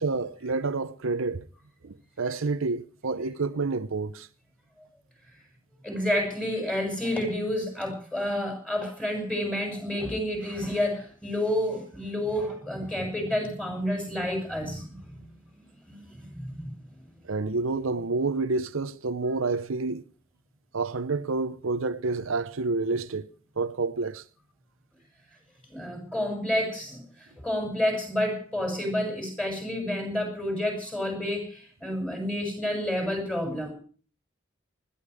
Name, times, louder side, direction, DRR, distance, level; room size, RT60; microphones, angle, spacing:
voice 1, 0.0-1.5 1.8-4.3 17.2-20.0 20.7-24.2 31.9-32.0, right 3 dB, 80° right, 0.7 m, -29 dB
voice 2, 5.8-15.2 15.8-16.8 25.7-33.7, left 1 dB, 5° left, 6.9 m, -30 dB
20.5 x 14.5 x 4.9 m
head